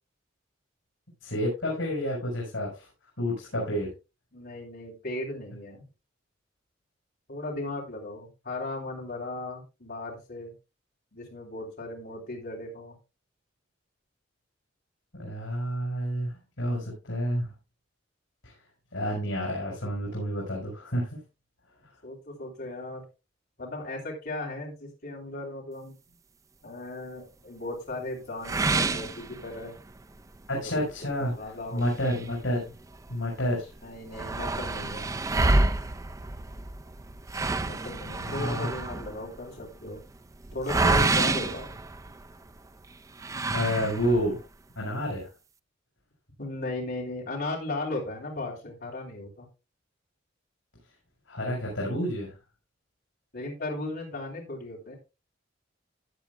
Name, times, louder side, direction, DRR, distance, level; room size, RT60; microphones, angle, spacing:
voice 1, 1.2-2.9 3.2-3.9 15.1-17.5 18.4-18.5 18.9-21.2 30.5-32.6 33.1-33.7 38.2-38.7 43.5-44.4 44.7-45.3 51.3-52.3, equal, 80° left, -2 dB, 4.9 m, -29 dB
voice 2, 4.3-5.8 7.3-10.5 11.1-13.0 22.0-23.0 23.6-25.9 26.6-29.7 30.6-31.9 33.8-35.1 37.6-40.0 40.5-41.7 46.4-49.5 53.3-55.0, left 2 dB, 55° left, -2 dB, 3.3 m, -36 dB
sound 1, 28.4-29.9 30.3-30.4 30.9-31.0 31.8-33.1 33.4-33.5 33.8-42.5 43.2-44.3, right 2 dB, 15° right, 0.4 m, -28 dB
15.0 x 9.1 x 2.2 m, 0.27 s
head